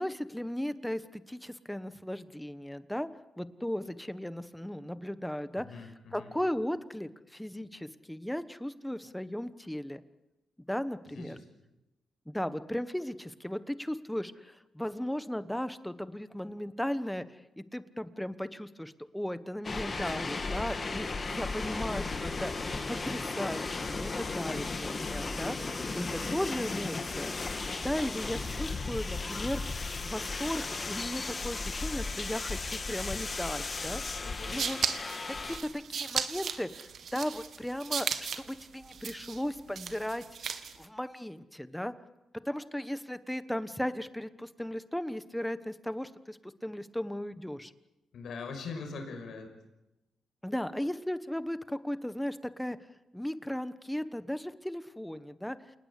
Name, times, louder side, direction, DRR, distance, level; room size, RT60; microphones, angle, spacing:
voice 1, 0.0-3.1 3.4-5.7 6.1-10.0 10.7-11.4 12.3-22.5 22.9-27.4 27.8-34.0 34.5-34.8 35.3-42.0 42.5-47.7 50.4-52.8 53.1-55.6, equal, 5° left, 13 dB, 1.2 m, -36 dB
voice 2, 5.5-6.3 11.1-11.4 28.4-28.6 34.2-34.6 48.1-49.5, left 4 dB, 70° left, 4 dB, 6.0 m, -42 dB
sound 1, 19.6-35.6, left 3 dB, 30° left, 2.5 m, -35 dB
sound 2, 21.3-26.6, right 2 dB, 25° right, 6.7 m, -51 dB
sound 3, 34.3-40.8, right 7 dB, 60° right, 1.8 m, -36 dB
28.0 x 19.0 x 8.5 m, 0.97 s
cardioid pair, 105°, 0 cm